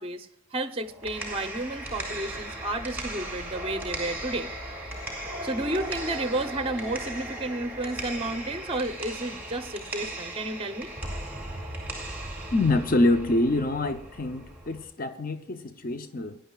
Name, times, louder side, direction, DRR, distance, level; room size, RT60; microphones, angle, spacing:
voice 1, 0.0-4.5 5.4-10.9, right 2 dB, 25° right, 9 dB, 0.7 m, -32 dB
sound 1, 0.8-14.8, right 1 dB, 10° right, 2.5 m, -37 dB
voice 2, 12.5-16.4, left 2 dB, 40° left, 9 dB, 0.6 m, -25 dB
17.0 x 10.0 x 2.4 m, 0.63 s
head